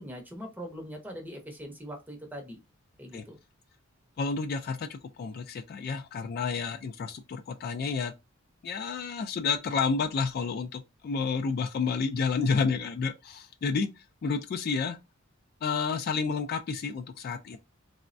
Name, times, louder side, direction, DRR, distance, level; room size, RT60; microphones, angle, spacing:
voice 1, 0.0-2.6 3.0-3.4, equal, 10° right, 0.6 m, -41 dB
voice 2, 4.2-8.1 8.6-15.0 15.6-17.6, left 5 dB, 45° left, 0.3 m, -30 dB
3.3 x 2.0 x 2.5 m
head